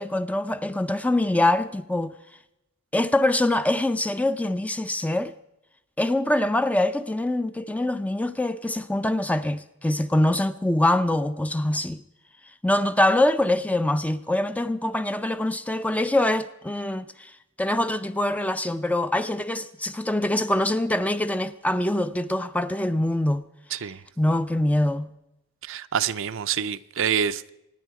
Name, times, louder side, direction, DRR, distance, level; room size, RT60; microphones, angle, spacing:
voice 1, 0.0-2.1 2.9-5.3 6.0-12.0 12.6-17.3 17.6-23.4 24.2-25.1, left 1 dB, 5° left, 0.5 m, -24 dB
voice 2, 25.6-27.5, right 8 dB, 60° right, 0.6 m, -27 dB
24.5 x 10.5 x 4.8 m
head